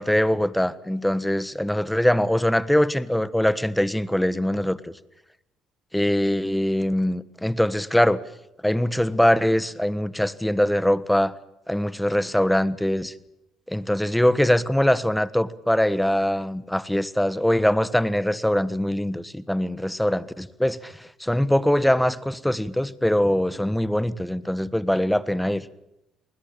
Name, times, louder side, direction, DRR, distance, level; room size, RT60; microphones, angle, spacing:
voice 1, 0.0-4.8 5.9-8.2 8.6-11.3 11.7-13.1 13.7-25.6, left 1 dB, 5° left, 1.5 m, -22 dB
28.5 x 20.5 x 7.6 m
hypercardioid pair, 60°, 0 cm